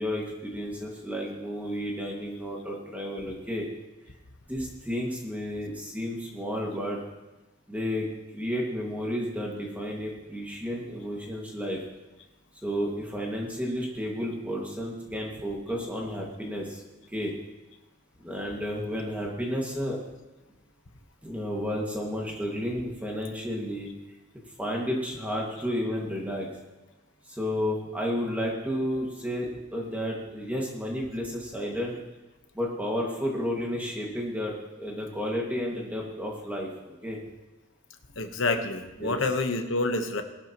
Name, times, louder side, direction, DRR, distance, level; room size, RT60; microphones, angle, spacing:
voice 1, 0.0-3.7 4.5-7.0 7.7-8.1 8.3-11.8 12.6-16.8 17.1-17.3 18.2-20.0 21.2-23.9 24.6-26.5 27.2-31.9 32.5-37.2 39.0-39.2, equal, 5° right, -2 dB, 2.0 m, -32 dB
voice 2, 38.2-40.2, left 2 dB, 60° left, 6 dB, 1.1 m, -27 dB
19.0 x 12.5 x 3.0 m, 1.1 s
head